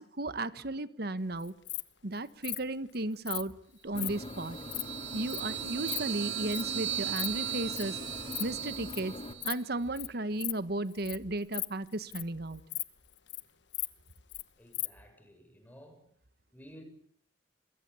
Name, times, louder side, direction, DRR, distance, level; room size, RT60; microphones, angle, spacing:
voice 1, 0.0-1.5 2.0-3.5 3.8-4.6 5.1-8.0 8.4-9.2 9.4-12.6, right 2 dB, 60° right, 1.5 m, -34 dB
Insect, 1.4-1.8 2.4-2.6 3.3-3.4 3.9-4.1 4.5-4.8 5.3-5.4 5.7-6.0 6.5-6.7 7.0-7.3 7.5-7.8 8.2-8.4 8.7-9.0 9.4-9.6 10.0-10.1 10.4-10.5 10.9-11.2 11.4-12.3 12.7-12.8 13.1-13.4 13.7-14.4 14.7-14.9, left 17 dB, 80° left, 1.2 m, -36 dB
sound 1, 3.9-9.3, left 1 dB, 30° left, 2.7 m, -43 dB
sound 2, 4.1-9.5, right 11 dB, 85° right, 7.3 m, -37 dB
voice 2, 14.6-16.0 16.5-16.8, equal, 10° left, 7.3 m, -53 dB
26.5 x 23.0 x 8.5 m
head